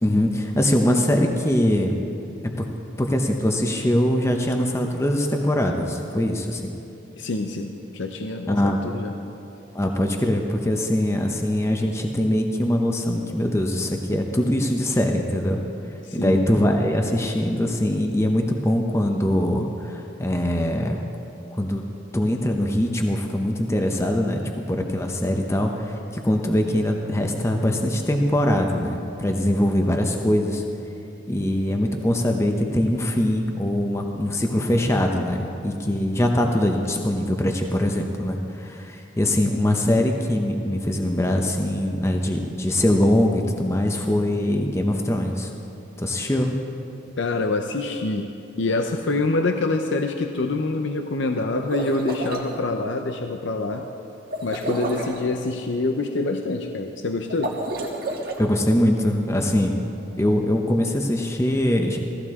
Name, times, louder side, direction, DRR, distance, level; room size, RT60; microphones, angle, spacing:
voice 1, 0.0-2.0 2.4-2.7 3.0-6.7 8.5-8.8 9.7-15.6 16.1-21.0 21.5-21.8 22.1-30.6 31.3-45.5 46.0-46.6 58.4-59.7 60.2-62.0, left 1 dB, 15° left, 2 dB, 0.7 m, -22 dB
voice 2, 7.2-9.1 16.0-16.4 47.2-48.3 48.6-53.9 54.4-57.6, left 2 dB, 70° left, 5 dB, 0.6 m, -26 dB
sound 1, 51.6-52.5 54.3-55.2 57.3-58.4, right 1 dB, 50° right, 1.5 m, -29 dB
16.5 x 14.5 x 3.6 m, 2.8 s
head